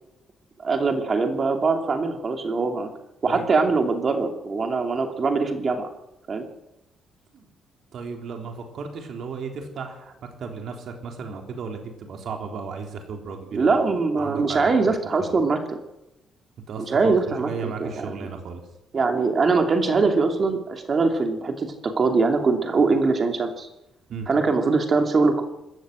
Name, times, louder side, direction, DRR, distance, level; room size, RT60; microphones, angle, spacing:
voice 1, 0.6-2.9 3.2-5.9 6.3-6.5 13.5-15.8 16.9-18.3 18.9-23.7 24.3-25.4, right 4 dB, 30° right, 5 dB, 2.7 m, -22 dB
voice 2, 3.3-3.6 7.3-7.5 7.9-10.1 10.4-13.8 14.2-14.9 15.2-15.3 16.7-17.2 17.5-18.6 24.1-24.3, right 5 dB, 50° right, 4 dB, 3.6 m, -35 dB
25.5 x 13.5 x 7.7 m, 0.97 s
cardioid pair, 175°, 0 cm